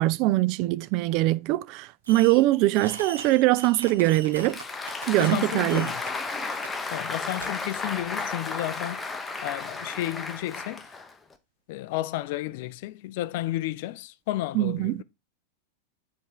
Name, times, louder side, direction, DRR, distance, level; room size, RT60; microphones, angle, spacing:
voice 1, 0.0-4.6 5.1-5.9 14.5-15.0, right 17 dB, 40° right, 0.3 m, -22 dB
Fireworks, 2.0-2.5 2.7-5.4 5.7-6.1 6.6-6.7 7.4-7.5, right 5 dB, 65° right, 1.2 m, -40 dB
Applause, 4.2-11.3, left 3 dB, 15° left, 0.8 m, -33 dB
voice 2, 5.2-6.0 6.9-9.1 9.4-10.8 11.7-15.0, left 15 dB, 50° left, 0.4 m, -32 dB
7.6 x 3.5 x 4.7 m
figure-of-eight pair, 90°, 0 cm